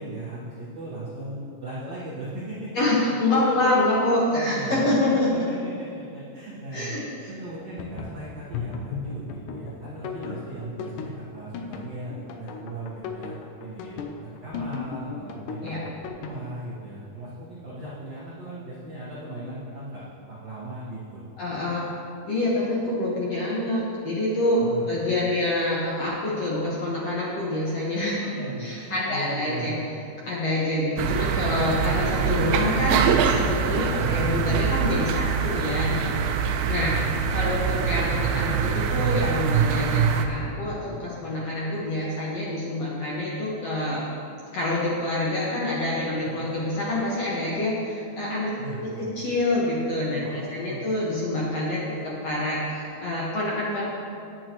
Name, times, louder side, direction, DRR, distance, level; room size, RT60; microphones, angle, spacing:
voice 1, 0.0-2.7 3.3-3.4 4.3-7.0 7.3-12.1 12.4-15.8 16.2-21.2 24.6-24.9 28.4-29.7 33.9-34.1 46.4-46.5 48.6-49.0 50.2-50.8 51.8-52.1, right 1 dB, 55° right, -8 dB, 2.0 m, -37 dB
voice 2, 2.7-5.3 6.7-7.3 10.1-10.4 15.6-15.8 21.4-21.9 22.3-24.6 24.9-29.8 30.3-37.0 37.3-44.0 44.5-53.8, left 1 dB, 55° left, -6 dB, 1.8 m, -26 dB
sound 1, 7.4-16.4, left 6 dB, 75° left, 2.0 m, -35 dB
sound 2, 31.0-40.2, right 7 dB, 85° right, 2.1 m, -24 dB
18.5 x 8.7 x 3.0 m, 2.7 s
omnidirectional pair, 4.6 m